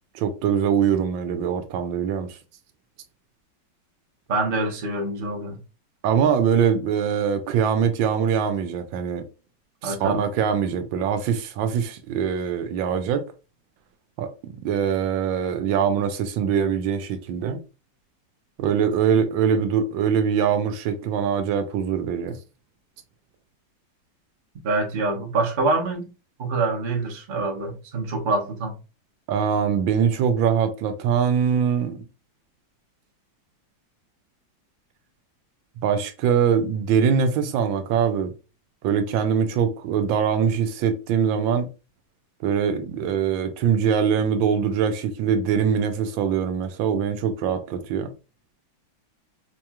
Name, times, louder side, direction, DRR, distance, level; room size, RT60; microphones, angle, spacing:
voice 1, 0.1-2.3 6.0-9.2 9.8-13.2 14.2-14.3 14.6-17.6 18.6-22.4 29.3-32.0 35.8-38.3 38.8-41.7 42.4-48.1, right 7 dB, 85° right, 1.4 m, -23 dB
voice 2, 4.3-5.6 9.8-10.2 24.6-26.1 26.4-28.8, right 3 dB, 40° right, 0.7 m, -25 dB
4.7 x 2.9 x 2.3 m
omnidirectional pair, 2.1 m